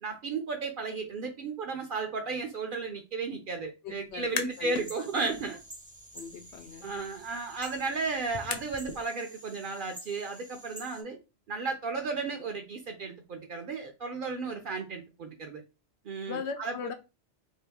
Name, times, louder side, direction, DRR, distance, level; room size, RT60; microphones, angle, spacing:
voice 1, 0.0-5.6 6.8-11.2 11.5-15.6 16.0-16.8, right 4 dB, 60° right, 0.6 m, -34 dB
voice 2, 3.8-5.5 6.1-6.9 16.3-16.9, left 6 dB, 85° left, 0.9 m, -40 dB
sound 1, 4.1-4.9 5.3-9.0, left 6 dB, 60° left, 0.4 m, -41 dB
sound 2, 4.5-11.0, right 1 dB, 10° right, 0.4 m, -50 dB
2.8 x 2.4 x 3.4 m
omnidirectional pair, 1.1 m